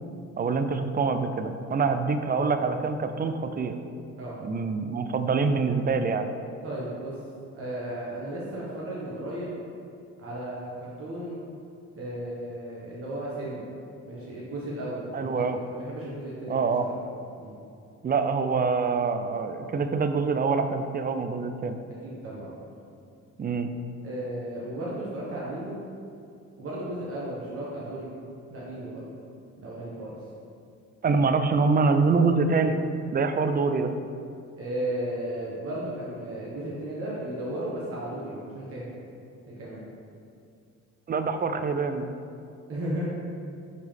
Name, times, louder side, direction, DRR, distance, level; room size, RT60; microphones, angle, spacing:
voice 1, 0.4-3.8 4.4-6.3 15.1-15.6 16.5-16.9 18.0-21.8 23.4-23.7 31.0-32.8 33.1-33.9 41.1-42.1, right 4 dB, 30° right, 8 dB, 0.5 m, -25 dB
voice 2, 6.6-7.2 7.5-9.6 10.2-11.4 12.0-13.6 14.0-16.9 17.4-17.5 22.0-22.6 24.0-25.8 26.6-28.1 28.5-29.0 29.6-30.2 34.6-38.9 39.5-39.8 42.7-43.0, right 1 dB, 45° right, -7 dB, 1.5 m, -35 dB
6.4 x 5.4 x 3.5 m, 2.5 s
cardioid pair, 90°, 30 cm